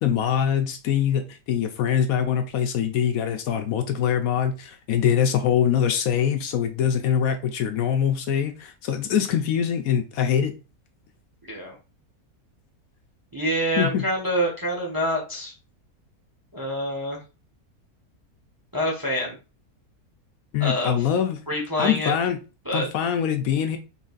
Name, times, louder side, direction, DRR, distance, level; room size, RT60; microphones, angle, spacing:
voice 1, 0.0-10.5 13.8-14.0 20.5-21.4 21.8-22.4 22.7-23.8, left 9 dB, 75° left, 7 dB, 1.0 m, -23 dB
voice 2, 13.3-15.5 16.5-17.2 18.7-19.4 20.6-21.0 21.5-22.1 22.6-22.9, equal, 20° right, -1 dB, 0.8 m, -26 dB
4.0 x 3.8 x 2.4 m, 0.31 s
omnidirectional pair, 1.6 m